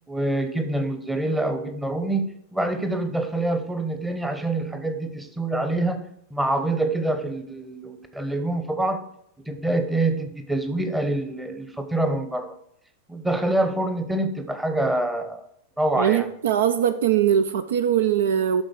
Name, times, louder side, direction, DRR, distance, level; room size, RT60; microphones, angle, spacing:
voice 1, 0.1-6.0 6.3-9.0 9.4-12.5 13.1-15.5 15.8-16.3, right 2 dB, 5° right, 0.8 m, -26 dB
voice 2, 16.0-18.6, right 9 dB, 60° right, 0.4 m, -21 dB
11.5 x 3.9 x 4.6 m
figure-of-eight pair, 90°, 0 cm